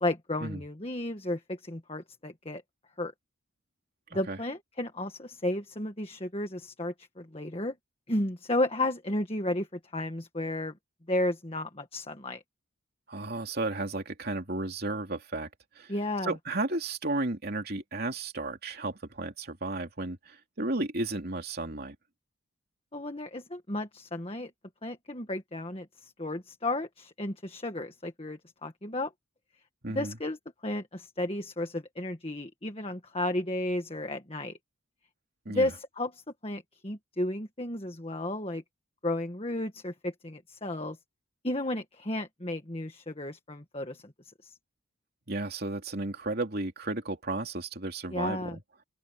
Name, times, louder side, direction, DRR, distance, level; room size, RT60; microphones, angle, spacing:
voice 1, 0.0-2.6 3.0-3.1 4.1-7.7 8.1-9.7 9.9-10.7 11.1-12.4 15.9-16.3 22.9-24.5 24.8-29.1 29.9-30.4 30.6-34.6 35.5-38.6 39.0-41.0 41.4-44.1 44.4-44.5 48.1-48.6, left 1 dB, 25° left, 1.6 m, -33 dB
voice 2, 13.1-15.5 15.7-15.9 16.2-21.9 29.8-30.2 35.4-35.7 45.3-48.5, right 2 dB, 45° right, 3.0 m, -33 dB
open air
head